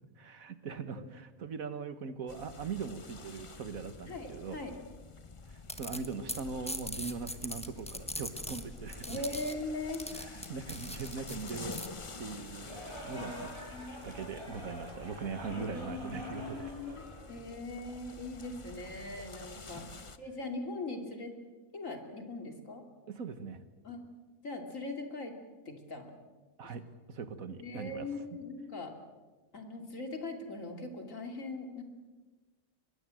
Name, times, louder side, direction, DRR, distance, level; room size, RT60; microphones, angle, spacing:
voice 1, 0.2-4.6 5.8-9.2 10.2-11.7 12.2-13.6 13.9-16.7 19.8-19.9 23.1-23.6 26.6-26.8 27.1-28.1, right 5 dB, 85° right, 11 dB, 1.9 m, -41 dB
sound 1, 2.3-20.2, left 3 dB, 25° left, 0.8 m, -49 dB
voice 2, 4.0-4.7 9.1-10.1 13.1-14.1 15.5-19.8 20.2-21.3 21.7-22.9 23.8-24.0 24.4-25.3 25.6-26.1 26.6-26.7 27.6-28.9 29.5-31.8, left 2 dB, 70° left, 4 dB, 3.3 m, -40 dB
sound 2, 5.6-11.9, equal, 5° left, 1.4 m, -42 dB
sound 3, 12.6-17.8, equal, 20° right, 5.8 m, -46 dB
23.5 x 21.5 x 7.8 m, 1.3 s
omnidirectional pair, 1.4 m